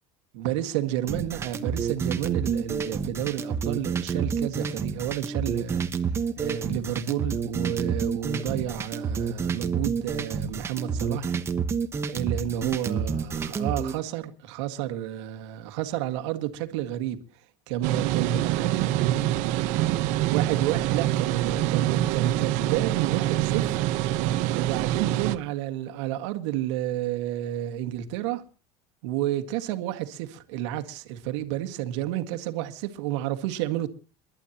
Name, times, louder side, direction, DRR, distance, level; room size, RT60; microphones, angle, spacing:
voice 1, 0.3-5.9 6.4-11.4 12.1-17.2 17.7-18.9 20.3-23.8 24.5-28.4 29.0-33.9, right 13 dB, 85° right, 1.7 m, -30 dB
sound 1, 1.1-14.0, right 6 dB, 20° right, 1.1 m, -29 dB
sound 2, 17.8-25.4, right 14 dB, 60° right, 1.0 m, -25 dB
28.5 x 12.0 x 2.9 m
cardioid pair, 165°, 14 cm